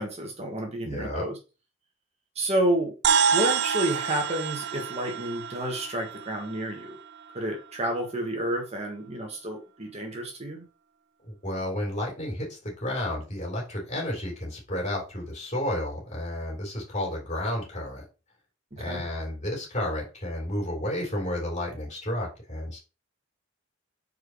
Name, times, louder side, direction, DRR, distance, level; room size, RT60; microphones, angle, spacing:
voice 1, 0.0-1.4 2.3-2.9 3.3-7.0 7.3-10.6 18.8-19.0, right 1 dB, 30° right, 1 dB, 1.5 m, -30 dB
voice 2, 0.8-1.2 11.3-18.0 18.8-22.8, left 1 dB, 35° left, -2 dB, 3.4 m, -31 dB
sound 1, 3.0-7.6, right 7 dB, 55° right, 0.4 m, -28 dB
4.8 x 4.7 x 5.0 m, 0.31 s
head